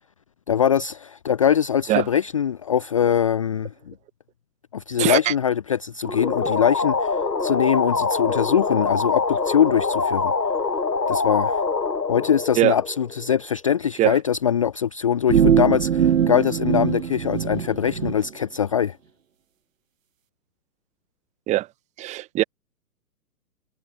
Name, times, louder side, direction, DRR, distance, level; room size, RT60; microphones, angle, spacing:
voice 1, 0.5-3.9 4.7-10.3 11.1-11.6 12.1-19.0, left 8 dB, 20° left, 0.6 m, -22 dB
voice 2, 5.0-5.3 12.6-12.8 14.0-14.2 21.5-21.7 22.0-22.4, right 15 dB, 15° right, 1.5 m, -21 dB
sound 1, 6.0-13.4, left 4 dB, 85° left, 1.5 m, -24 dB
sound 2, 15.3-18.1, right 8 dB, 55° right, 0.9 m, -21 dB
figure-of-eight pair, 125°, 48 cm